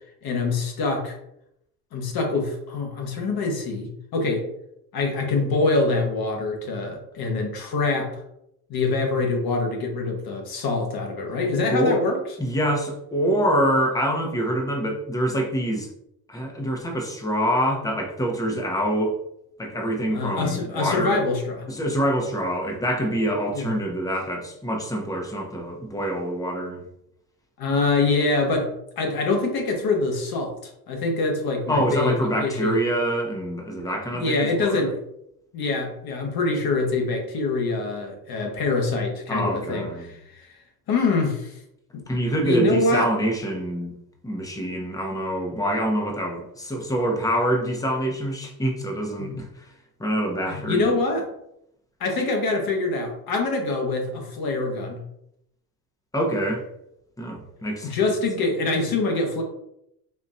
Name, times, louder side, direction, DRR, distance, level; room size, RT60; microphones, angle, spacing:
voice 1, 0.2-1.2 1.9-4.4 4.9-8.2 8.7-12.2 20.1-21.6 23.5-23.7 27.6-32.8 34.1-35.0 35.5-40.5 40.9-41.5 41.9-42.0 42.4-43.1 49.2-49.4 50.5-51.3 52.0-55.0 57.8-59.4, left 3 dB, 45° left, 2 dB, 1.3 m, -25 dB
voice 2, 12.4-15.9 16.3-19.1 19.6-21.2 21.7-26.8 31.7-34.9 39.3-40.1 42.1-43.9 44.2-49.5 50.0-50.8 56.1-56.6 57.2-57.9, equal, 5° left, 1 dB, 0.9 m, -25 dB
4.3 x 2.9 x 2.6 m, 0.79 s
hypercardioid pair, 75°, 49 cm